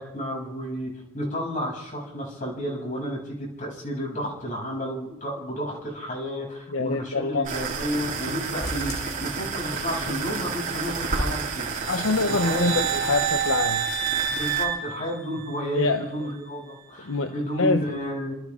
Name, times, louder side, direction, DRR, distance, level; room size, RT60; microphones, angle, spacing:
voice 1, 0.0-11.7 12.2-12.8 14.3-18.3, equal, 40° left, -2 dB, 7.9 m, -31 dB
voice 2, 6.7-7.5 11.9-13.9 15.7-16.1 17.1-17.3 17.6-17.9, left 3 dB, 80° left, 7 dB, 1.0 m, -25 dB
sound 1, 7.4-14.6, right 4 dB, 40° right, 3.7 m, -31 dB
sound 2, 8.6-10.1 10.4-10.5 11.0-11.1 11.5-11.6, equal, 20° left, 5.3 m, -38 dB
sound 3, 11.8-15.8, right 8 dB, 60° right, 2.5 m, -28 dB
28.5 x 27.5 x 3.8 m, 0.95 s
head